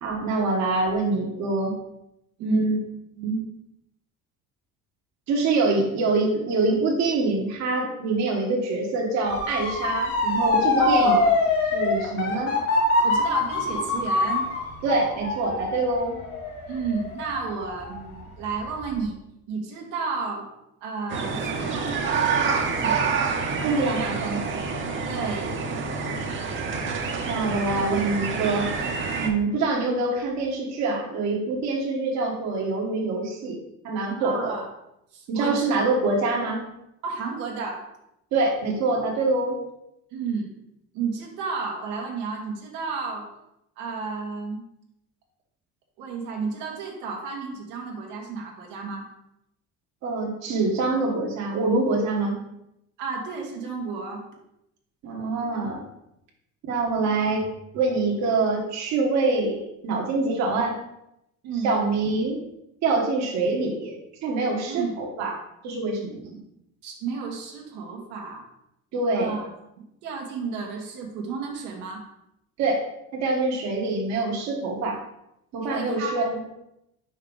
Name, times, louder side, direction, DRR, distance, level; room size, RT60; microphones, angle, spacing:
voice 1, 0.0-1.8 2.4-2.8 3.2-3.4 5.3-11.2 11.7-12.5 14.8-16.2 23.6-24.4 27.2-28.7 29.2-33.6 33.8-34.5 35.3-36.6 38.3-39.6 50.0-52.4 55.0-55.8 56.7-57.5 57.7-60.8 61.6-62.4 62.8-64.0 64.2-65.4 65.6-66.4 68.9-69.3 72.6-72.8 73.1-75.0 75.5-76.4, right 3 dB, 60° right, -1 dB, 1.4 m, -25 dB
voice 2, 2.4-2.7 10.8-11.3 13.0-14.5 16.7-19.2 19.5-20.5 20.8-23.2 25.0-25.6 34.2-34.6 35.1-35.7 37.0-37.8 40.1-40.5 40.9-43.3 43.8-44.6 46.0-49.1 53.0-54.2 61.4-61.8 64.7-64.9 66.8-68.4 69.1-69.5 69.8-72.0 75.6-76.3, right 5 dB, 85° right, -1 dB, 1.4 m, -32 dB
Motor vehicle (road) / Siren, 9.3-18.2 18.6-19.0, left 2 dB, 45° left, 1.9 m, -24 dB
sound 1, 21.1-29.3, right 5 dB, 40° right, 1.0 m, -27 dB
5.4 x 4.6 x 3.9 m, 0.83 s
cardioid pair, 110°, 30 cm